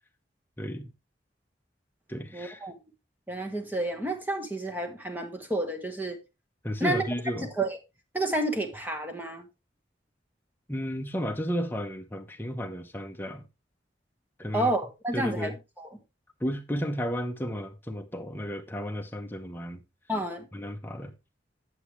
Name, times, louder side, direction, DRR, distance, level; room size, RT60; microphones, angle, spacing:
voice 1, 0.6-0.9 2.1-2.7 6.6-7.5 10.7-13.5 14.4-14.7 15.1-15.6 16.4-19.8 20.5-21.1, equal, 10° left, 0.8 m, -33 dB
voice 2, 2.3-2.8 3.3-6.2 6.8-7.0 7.4-7.8 8.1-9.4 14.5-15.5 15.8-15.9 20.1-20.5, right 1 dB, 10° right, 1.2 m, -30 dB
8.5 x 8.2 x 3.2 m
head